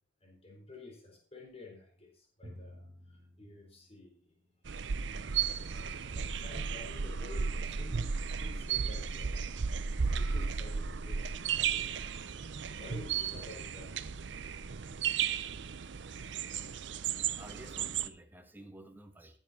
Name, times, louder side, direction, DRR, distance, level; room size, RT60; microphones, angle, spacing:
voice 1, 0.2-4.4 5.0-11.9 12.3-14.2 15.5-15.7, left 2 dB, 30° left, 1 dB, 3.9 m, -52 dB
Drum, 2.4-4.8, equal, 40° right, 1.8 m, -53 dB
sound 1, 4.6-18.1, right 6 dB, 70° right, 0.6 m, -34 dB
voice 2, 17.0-19.4, right 1 dB, 10° right, 6 dB, 1.4 m, -52 dB
15.5 x 7.2 x 4.2 m, 0.42 s
head